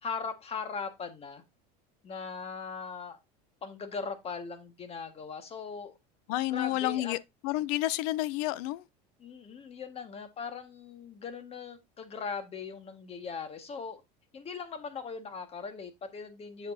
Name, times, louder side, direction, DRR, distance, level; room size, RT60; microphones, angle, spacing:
voice 1, 0.0-1.4 2.0-3.2 3.6-6.0 6.5-7.1 9.2-14.0 14.3-16.7, left 5 dB, 30° left, 1.5 m, -39 dB
voice 2, 6.3-7.2 7.4-8.8, left 15 dB, 70° left, 0.5 m, -30 dB
7.9 x 6.8 x 2.6 m
supercardioid pair, 120°, 21 cm